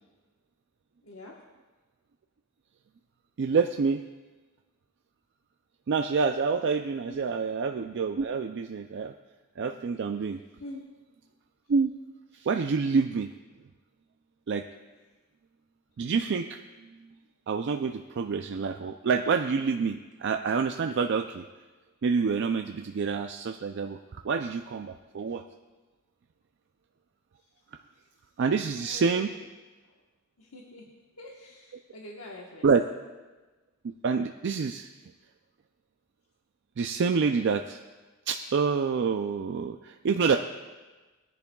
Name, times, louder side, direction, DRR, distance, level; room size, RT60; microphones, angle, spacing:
voice 1, 1.0-1.4 7.1-7.2 10.6-10.9 12.4-12.5 28.8-29.3 29.9-30.0 30.4-30.9 31.2-32.7, left 1 dB, 80° left, -2 dB, 1.2 m, -45 dB
voice 2, 3.4-4.0 5.9-9.1 9.6-10.4 11.7-11.9 12.3-13.3 14.5-14.7 16.0-16.6 17.5-21.4 22.0-25.4 28.4-29.3 32.6-32.9 34.0-34.9 36.8-37.8 38.3-40.4, right 5 dB, 55° right, 5 dB, 0.4 m, -27 dB
19.5 x 10.5 x 2.3 m, 1.3 s
head